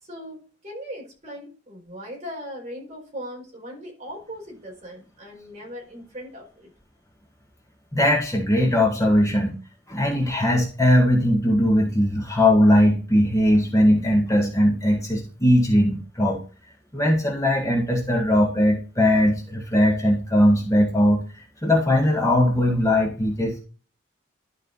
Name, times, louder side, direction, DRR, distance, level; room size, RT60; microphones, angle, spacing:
voice 1, 0.0-6.7, equal, 35° right, -2 dB, 4.7 m, -39 dB
voice 2, 7.9-9.5 9.9-16.4 16.9-21.2 21.6-23.6, left 1 dB, 15° left, -1 dB, 1.9 m, -19 dB
12.0 x 5.2 x 4.1 m, 0.35 s
head